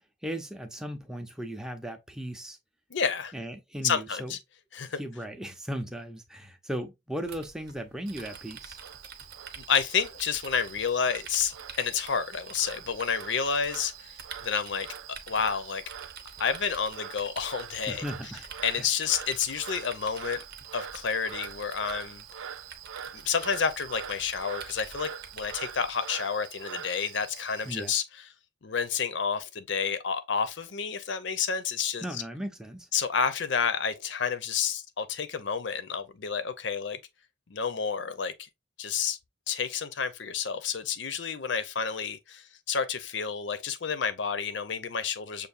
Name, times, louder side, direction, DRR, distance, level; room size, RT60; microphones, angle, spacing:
voice 1, 0.2-2.6 3.3-4.3 5.0-8.8 17.9-18.4 18.8-18.9 27.6-27.9 32.0-32.9, equal, 5° right, 0.6 m, -37 dB
voice 2, 2.9-3.3 3.8-4.4 4.7-5.0 9.6-14.9 15.3-15.8 16.4-18.0 18.6-20.4 20.7-22.2 23.1-28.2 28.6-32.2 32.9-37.0 37.5-38.3 38.8-39.2 39.5-45.5, left 6 dB, 65° left, 0.6 m, -30 dB
sound 1, 7.2-25.9, right 5 dB, 55° right, 0.8 m, -48 dB
Frog, 8.1-27.9, right 8 dB, 85° right, 0.4 m, -44 dB
6.6 x 2.6 x 2.5 m
head